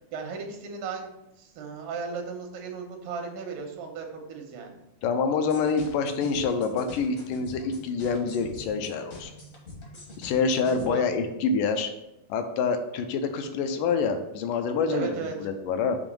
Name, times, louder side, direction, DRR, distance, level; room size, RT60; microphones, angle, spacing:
voice 1, 0.1-1.1 1.4-4.8 10.9-11.0 14.9-15.4, right 5 dB, 90° right, 3 dB, 2.7 m, -35 dB
voice 2, 5.0-9.3 10.2-11.9 12.3-15.1 15.4-16.0, left 5 dB, 85° left, 6 dB, 2.2 m, -26 dB
sound 1, 5.4-10.9, left 1 dB, 55° left, 0.9 m, -45 dB
7.0 x 3.0 x 5.3 m, 0.87 s
omnidirectional pair, 3.8 m